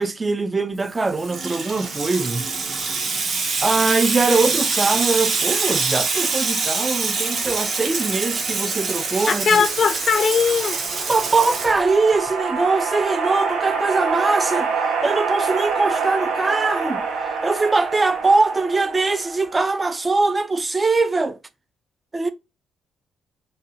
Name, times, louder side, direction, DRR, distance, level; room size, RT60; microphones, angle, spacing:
voice 1, 0.0-2.5 3.6-9.6 11.1-21.4 22.1-22.3, right 3 dB, 25° right, 0.4 m, -22 dB
Water tap faucet / Sink (filling or washing), 0.9-12.3, right 4 dB, 50° right, 0.7 m, -25 dB
voice 2, 9.3-10.8, left 6 dB, 50° left, 0.5 m, -19 dB
sound 1, 10.2-19.7, right 5 dB, 85° right, 0.5 m, -26 dB
2.7 x 2.2 x 2.7 m
cardioid pair, 90°, 0 cm